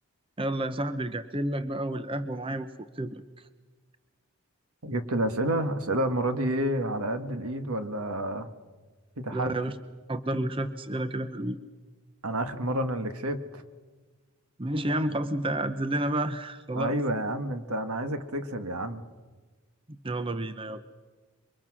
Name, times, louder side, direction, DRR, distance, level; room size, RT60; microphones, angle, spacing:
voice 1, 0.4-2.7 3.0-3.2 9.3-9.7 10.1-11.6 14.6-16.9 19.9-20.8, right 1 dB, 25° right, 11 dB, 0.8 m, -30 dB
voice 2, 4.8-8.5 9.2-9.6 12.2-13.6 16.8-19.1, right 1 dB, 80° right, 9 dB, 1.7 m, -29 dB
27.0 x 24.0 x 6.2 m, 1.4 s
head